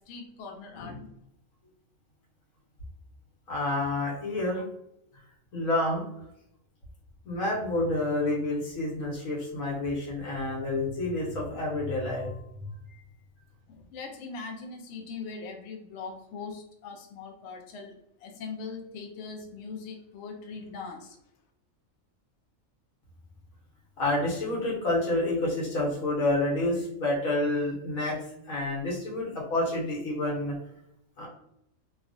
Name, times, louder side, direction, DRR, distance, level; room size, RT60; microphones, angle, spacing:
voice 1, 0.1-1.1 13.7-17.9 18.2-21.2, left 4 dB, 65° left, 2 dB, 0.8 m, -41 dB
voice 2, 3.5-4.6 5.5-6.0 7.2-12.3 24.0-28.2 28.5-30.6 31.2-31.3, left 2 dB, 85° left, -3 dB, 1.4 m, -28 dB
3.1 x 2.3 x 2.5 m, 0.80 s
omnidirectional pair, 1.4 m